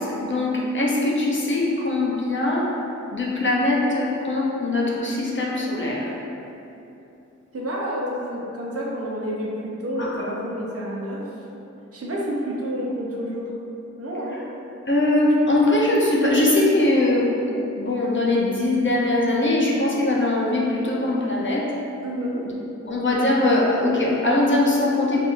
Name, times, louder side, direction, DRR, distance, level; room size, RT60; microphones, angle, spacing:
voice 1, 0.0-2.7 3.1-6.2 10.0-10.2 14.9-17.3 17.8-21.6 22.8-25.3, left 2 dB, 40° left, -4 dB, 0.5 m, -21 dB
voice 2, 7.5-11.2 11.9-13.5 14.0-14.4 22.0-22.4, equal, 50° right, -4 dB, 0.6 m, -29 dB
4.3 x 2.5 x 2.4 m, 2.9 s
wide cardioid pair, 90°, 30 cm